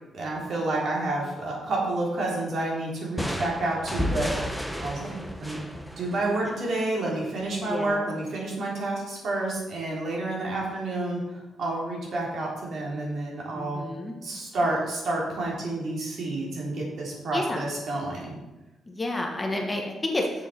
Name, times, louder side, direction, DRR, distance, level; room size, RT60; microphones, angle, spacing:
voice 1, 0.1-5.6 6.0-13.8 14.2-18.3, right 2 dB, 60° right, -3 dB, 3.4 m, -29 dB
sound 1, 3.2-6.8, equal, ahead, 0.8 m, -32 dB
voice 2, 7.6-8.0 10.4-10.5 13.5-14.4 17.3-17.7 18.9-20.5, left 1 dB, 15° left, 1 dB, 1.2 m, -31 dB
7.2 x 7.2 x 5.8 m, 1.1 s
cardioid pair, 140°, 0 cm